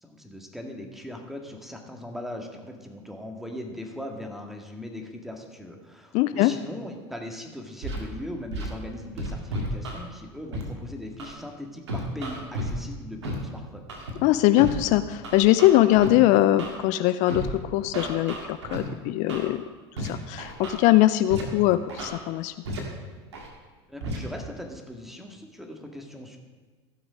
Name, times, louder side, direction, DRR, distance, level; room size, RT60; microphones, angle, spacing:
voice 1, 0.0-13.8 23.9-26.4, left 1 dB, ahead, 3 dB, 2.0 m, -39 dB
voice 2, 6.1-6.5 14.2-19.6 20.0-22.5, left 15 dB, 60° left, 12 dB, 0.4 m, -21 dB
Scratching (performance technique), 7.8-8.0 8.5-8.7 9.2-10.0 10.5-10.6 11.2-11.3 11.9-12.7 13.2-13.3 13.9-14.1 14.6-14.7 15.2-16.1 16.6-16.7 17.3-17.5 17.9-18.8 19.3-19.4 20.0-20.1 20.4-20.7 21.3-21.4 21.9-22.1 22.6-22.8 23.3-23.5 24.0-24.2, right 1 dB, 90° right, 1.9 m, -32 dB
15.5 x 6.2 x 5.1 m, 1.4 s
hypercardioid pair, 85°, 14 cm